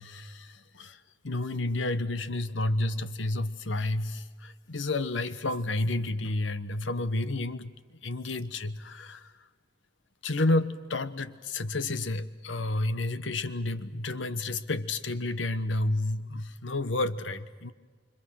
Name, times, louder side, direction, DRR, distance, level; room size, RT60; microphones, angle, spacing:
voice 1, 0.0-7.7 8.0-9.3 10.2-17.7, left 2 dB, 85° left, 12 dB, 1.3 m, -30 dB
28.0 x 26.0 x 6.4 m, 1.4 s
head